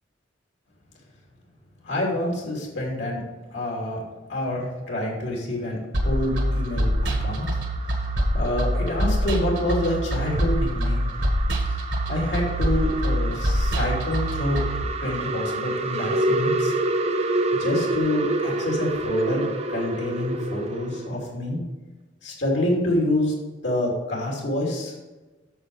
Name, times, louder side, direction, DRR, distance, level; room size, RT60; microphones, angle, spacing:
voice 1, 1.8-3.2 3.5-4.0 4.3-7.5 7.9-8.0 8.3-11.1 11.7-11.8 12.1-14.7 15.0-16.7 17.5-19.5 19.7-21.6 22.2-23.3 23.6-24.9, left 1 dB, 75° left, -3 dB, 3.0 m, -27 dB
sound 1, 5.9-14.8, equal, 70° right, 1.5 m, -25 dB
sound 2, 6.0-21.2, right 2 dB, 35° right, 0.7 m, -29 dB
8.9 x 6.7 x 4.9 m, 1.2 s
head